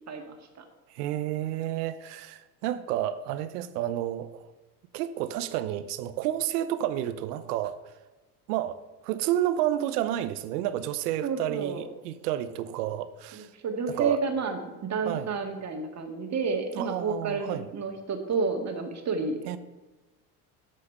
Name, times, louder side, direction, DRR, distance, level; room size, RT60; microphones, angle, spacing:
voice 1, 0.1-0.6 11.2-11.8 13.3-19.6, right 4 dB, 35° right, 4 dB, 2.0 m, -30 dB
voice 2, 0.9-4.5 4.9-7.9 8.5-8.8 9.0-13.5 13.9-14.2 15.1-15.3 16.7-17.7 19.5-19.6, right 12 dB, 80° right, 13 dB, 0.9 m, -30 dB
8.5 x 5.6 x 6.7 m, 1.1 s
supercardioid pair, 95°, 45 cm